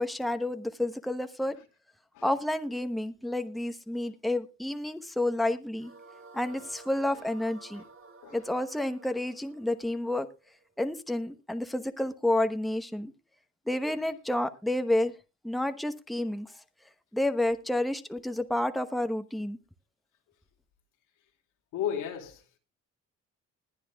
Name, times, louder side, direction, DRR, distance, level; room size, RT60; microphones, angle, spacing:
voice 1, 0.0-1.5 2.2-5.9 6.3-7.8 8.3-10.3 10.8-13.1 13.7-15.1 15.4-16.5 17.1-19.6, left 1 dB, ahead, 1.0 m, -30 dB
sound 1, 5.8-11.0, right 4 dB, 45° right, 1.5 m, -52 dB
voice 2, 21.7-22.6, left 9 dB, 85° left, 2.6 m, -34 dB
20.5 x 10.0 x 2.3 m
cardioid pair, 90°, 30 cm